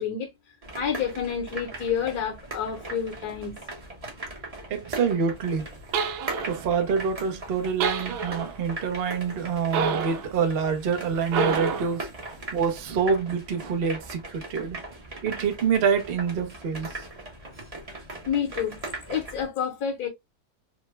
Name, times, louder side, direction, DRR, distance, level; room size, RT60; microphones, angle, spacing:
voice 1, 0.0-3.6 18.3-18.8 19.0-20.1, left 8 dB, 60° left, 1.1 m, -29 dB
sound 1, 0.6-19.4, right 2 dB, 30° right, 0.7 m, -39 dB
voice 2, 4.7-5.7 6.4-14.8 15.2-16.9, right 6 dB, 65° right, 0.5 m, -26 dB
sound 2, 5.9-6.7 7.8-8.6 9.7-10.3 11.3-12.0, right 5 dB, 80° right, 1.4 m, -28 dB
3.5 x 2.2 x 3.1 m
omnidirectional pair, 2.2 m